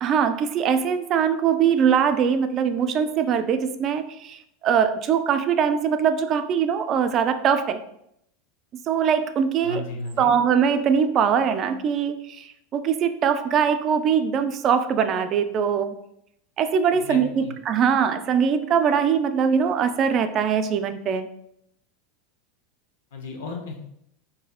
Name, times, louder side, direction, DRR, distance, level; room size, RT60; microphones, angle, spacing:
voice 1, 0.0-4.4 4.6-7.8 8.9-9.8 10.2-15.9 16.6-21.3, right 7 dB, 40° right, 9 dB, 0.3 m, -22 dB
voice 2, 9.6-10.3 16.9-17.5 23.1-23.8, left 3 dB, 75° left, 2 dB, 0.7 m, -34 dB
4.0 x 2.6 x 2.4 m, 0.75 s
hypercardioid pair, 90°, 0 cm